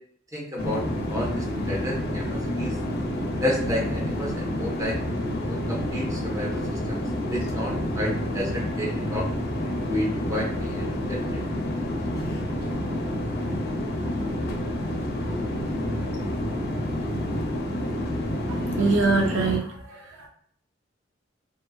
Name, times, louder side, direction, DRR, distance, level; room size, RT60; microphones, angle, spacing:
voice 1, 0.3-2.7 3.4-5.0 5.4-7.0 7.3-9.3 9.9-11.4, equal, 15° right, -3 dB, 0.7 m, -31 dB
sound 1, 0.6-19.6, left 1 dB, 55° left, 0.5 m, -29 dB
voice 2, 18.5-20.0, right 3 dB, 70° right, 1 dB, 0.4 m, -24 dB
2.6 x 2.5 x 2.2 m, 0.64 s
head